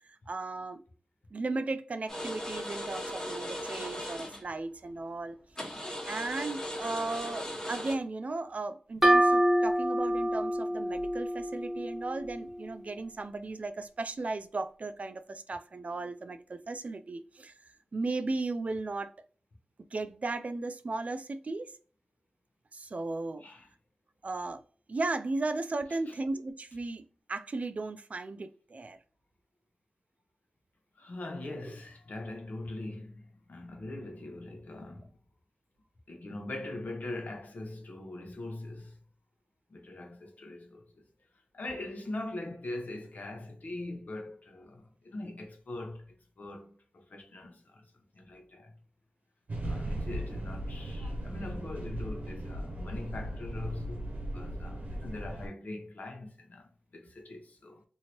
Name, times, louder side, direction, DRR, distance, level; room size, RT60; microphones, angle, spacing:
voice 1, 0.3-0.8 1.3-5.4 6.1-17.5 17.9-19.1 19.9-21.7 22.7-23.4 24.2-24.6 24.9-27.0 27.3-29.0 31.5-31.7, right 3 dB, 55° right, 0.4 m, -36 dB
sound 1, 2.1-4.5 5.6-8.0, left 1 dB, 20° left, 1.0 m, -38 dB
sound 2, 9.0-12.6, right 1 dB, 10° right, 1.1 m, -27 dB
voice 2, 30.9-33.2 33.5-35.1 36.1-39.0 39.7-41.0 41.5-47.9 48.1-48.7 49.6-57.8, left 2 dB, 70° left, 0.8 m, -42 dB
sound 3, 49.5-55.5, right 1 dB, 70° right, 0.8 m, -37 dB
2.9 x 2.7 x 2.9 m
cardioid pair, 45°, 3 cm